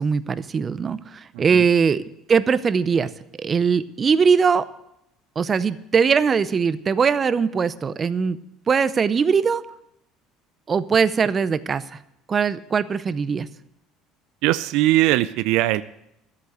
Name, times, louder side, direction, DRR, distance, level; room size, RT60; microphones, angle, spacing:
voice 1, 0.0-2.0 2.3-3.1 3.4-4.7 5.4-8.4 8.7-9.6 10.7-12.0 12.3-13.5, right 6 dB, 30° right, 14 dB, 0.7 m, -21 dB
voice 2, 1.3-1.7 14.4-15.8, right 16 dB, 75° right, 14 dB, 0.4 m, -20 dB
13.5 x 8.2 x 8.0 m, 0.83 s
supercardioid pair, 105°, 0 cm